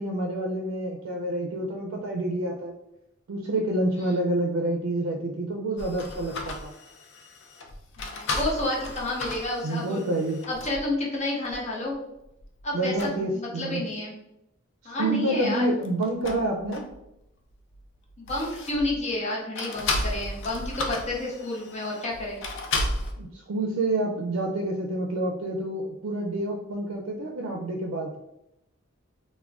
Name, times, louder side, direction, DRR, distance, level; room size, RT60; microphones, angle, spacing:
voice 1, 0.0-2.7 3.3-6.7 9.6-10.5 12.7-13.8 14.8-16.8 23.2-28.1, right 1 dB, 85° right, 1 dB, 0.4 m, -28 dB
sound 1, 5.8-10.9 11.5-11.6 12.2-12.6 12.9-13.2 15.7-17.2 17.5-19.0 19.5-23.1, left 2 dB, 65° left, 0.4 m, -34 dB
voice 2, 8.0-10.0 10.5-11.9 12.6-14.1 14.8-15.7 18.2-22.4, left 2 dB, 35° left, -3 dB, 0.7 m, -30 dB
2.3 x 2.1 x 3.4 m, 0.86 s
head